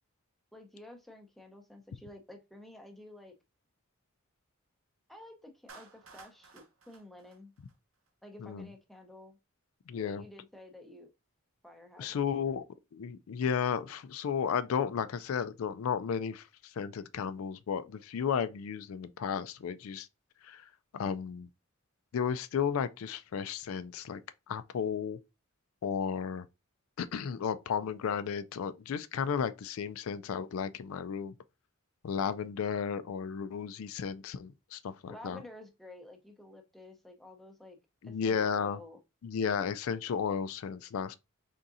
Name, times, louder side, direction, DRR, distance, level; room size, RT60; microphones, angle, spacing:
voice 1, 0.5-3.4 5.1-7.5 8.2-9.4 9.9-11.1 11.6-12.5 35.1-37.8 38.0-39.0, left 1 dB, ahead, 0.6 m, -51 dB
Clapping, 5.7-8.1, right 4 dB, 75° right, 0.9 m, -55 dB
voice 2, 9.9-10.2 12.0-12.6 12.9-20.1 20.4-21.5 22.1-24.2 24.5-25.2 25.8-26.5 27.0-31.3 32.0-35.4 38.0-38.8 39.2-41.2, left 7 dB, 80° left, 0.4 m, -33 dB
4.1 x 3.6 x 2.5 m
head